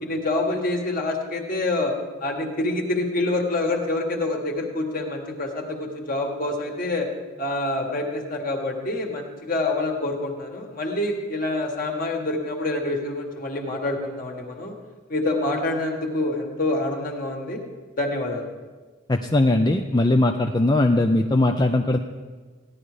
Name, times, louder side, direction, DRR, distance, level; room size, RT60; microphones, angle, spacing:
voice 1, 0.0-1.9 2.2-7.1 7.4-14.8 15.1-17.6 18.0-18.5, left 2 dB, 45° left, 2 dB, 1.8 m, -26 dB
voice 2, 19.1-22.0, left 2 dB, 20° left, 4 dB, 0.5 m, -20 dB
16.0 x 11.0 x 5.0 m, 1.4 s
head